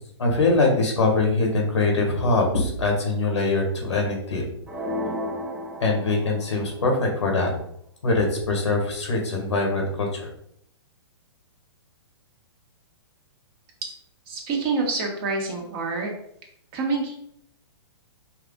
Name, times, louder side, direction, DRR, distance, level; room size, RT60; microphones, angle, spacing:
voice 1, 0.2-4.4 5.8-7.5 8.0-10.3, left 3 dB, 90° left, 1 dB, 1.6 m, -23 dB
sound 1, 4.7-6.7, left 1 dB, 5° right, 0.5 m, -32 dB
voice 2, 14.3-16.1 16.7-17.2, right 4 dB, 35° right, 0 dB, 1.3 m, -27 dB
4.7 x 2.5 x 3.7 m, 0.70 s
hypercardioid pair, 135°, 14 cm